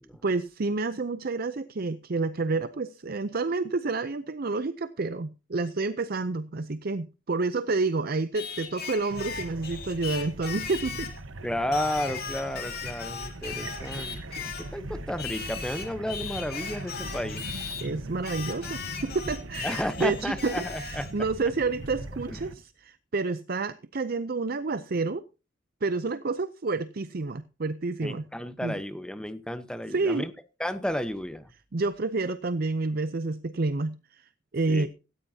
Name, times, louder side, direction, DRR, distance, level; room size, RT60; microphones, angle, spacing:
voice 1, 0.2-11.1 17.8-25.2 25.8-28.2 28.6-28.7 29.9-30.2 31.7-34.9, right 3 dB, 50° right, 0.6 m, -29 dB
Singing, 8.3-11.2 11.7-14.7 15.2-17.9 18.2-21.1, left 6 dB, 50° left, 2.7 m, -38 dB
sound 1, 9.1-22.5, right 2 dB, 90° right, 1.2 m, -40 dB
voice 2, 11.4-17.4 19.6-21.1 22.3-22.5 28.0-30.3 30.6-31.5 34.7-34.9, left 1 dB, 5° left, 0.9 m, -32 dB
16.5 x 13.5 x 2.8 m
head